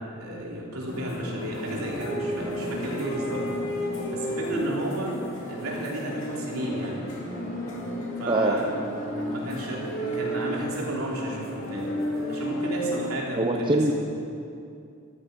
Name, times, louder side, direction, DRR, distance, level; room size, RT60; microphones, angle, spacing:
voice 1, 0.0-3.4 4.1-5.1 5.5-7.0 8.2-8.7 9.3-11.9 12.3-13.9, right 1 dB, 90° right, -3 dB, 3.3 m, -33 dB
sound 1, 0.9-13.1, equal, 65° left, 2.5 m, -32 dB
voice 2, 8.3-8.6 13.4-13.9, right 2 dB, 25° right, 3 dB, 0.7 m, -23 dB
14.0 x 12.5 x 5.3 m, 2.5 s
head